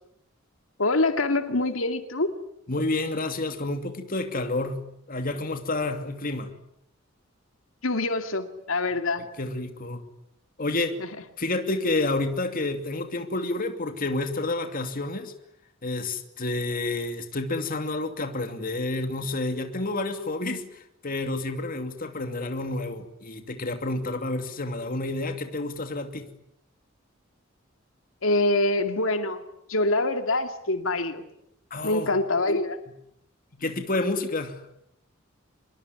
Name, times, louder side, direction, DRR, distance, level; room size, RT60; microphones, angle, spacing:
voice 1, 0.8-2.4 7.8-9.3 11.0-11.2 28.2-29.4 29.7-31.2 31.8-32.8, left 2 dB, 85° left, 2.5 m, -25 dB
voice 2, 2.7-6.5 9.4-10.0 10.6-11.0 11.4-15.3 15.8-20.6 21.0-26.3 31.7-32.1 33.5-34.6, left 2 dB, 45° left, 2.7 m, -29 dB
26.0 x 22.5 x 9.8 m
head